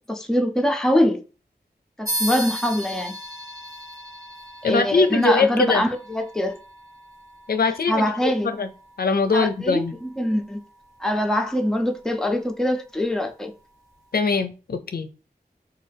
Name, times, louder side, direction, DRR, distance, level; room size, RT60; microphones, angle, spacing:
voice 1, 0.1-1.2 2.0-3.2 4.7-6.6 7.9-8.5 9.3-10.6 11.0-13.5, left 1 dB, 5° left, 0.5 m, -23 dB
sound 1, 2.1-12.0, equal, 20° right, 0.8 m, -37 dB
voice 2, 4.6-5.8 7.5-8.0 8.4-8.7 9.0-9.9 14.1-15.1, left 4 dB, 65° left, 0.4 m, -21 dB
3.1 x 2.3 x 3.2 m
wide cardioid pair, 70°, 17 cm